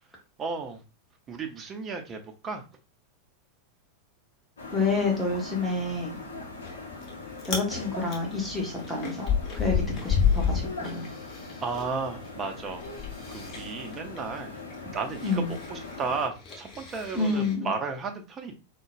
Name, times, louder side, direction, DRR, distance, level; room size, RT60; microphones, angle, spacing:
voice 1, 0.4-0.8 1.3-2.6 11.6-12.8 13.3-14.5 14.9-18.5, right 4 dB, 25° right, 5 dB, 0.5 m, -34 dB
sound 1, 4.6-16.3, left 3 dB, 70° left, 0.7 m, -41 dB
voice 2, 4.7-6.2 7.4-11.1 15.2-15.5 17.1-17.7, left 3 dB, ahead, -3 dB, 1.0 m, -29 dB
Chewing mastication, 6.6-7.1 7.4-7.7 8.1-11.8 12.1-17.5, left 7 dB, 30° left, 0.8 m, -30 dB
3.7 x 2.2 x 2.4 m, 0.30 s
figure-of-eight pair, 90°, 0 cm